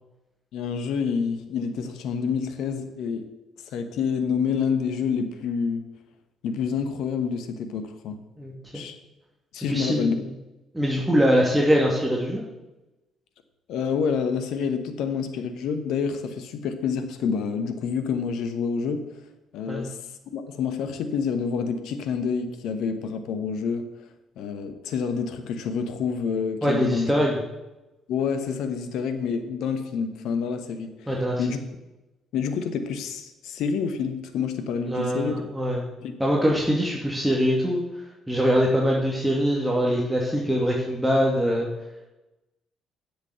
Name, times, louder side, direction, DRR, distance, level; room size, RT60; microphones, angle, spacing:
voice 1, 0.5-3.2 3.7-5.8 6.4-8.2 8.7-9.0 9.5-10.2 13.7-19.0 19.5-20.0 20.3-23.9 24.4-27.1 28.1-31.1 31.4-31.6 32.3-35.4 36.0-36.1, left 6 dB, 65° left, 8 dB, 1.1 m, -28 dB
voice 2, 8.4-8.8 9.7-10.3 10.7-12.4 19.7-19.8 26.6-27.4 31.1-31.4 34.9-35.8 36.2-37.8 38.3-41.7, equal, 5° right, -3 dB, 2.4 m, -23 dB
7.8 x 7.0 x 7.9 m, 1.0 s
hypercardioid pair, 50°, 0 cm